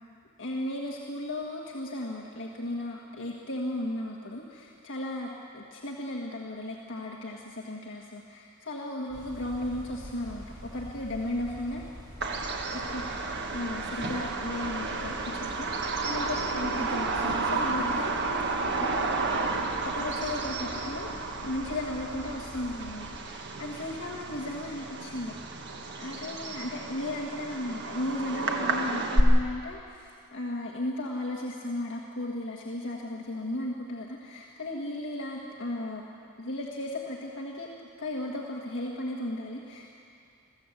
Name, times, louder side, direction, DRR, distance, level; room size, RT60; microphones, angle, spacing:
voice 1, 0.4-11.8 12.7-13.2 13.5-18.2 18.8-18.9 19.8-21.1 21.4-25.3 26.0-36.0 36.4-40.0, left 1 dB, 60° left, -2 dB, 1.5 m, -35 dB
sound 1, 9.1-23.2, equal, 20° right, 6.4 m, -45 dB
Bird vocalization bird call bird song, 12.2-29.2, right 3 dB, 50° right, 1.5 m, -32 dB
22.0 x 15.0 x 8.0 m, 2.5 s
head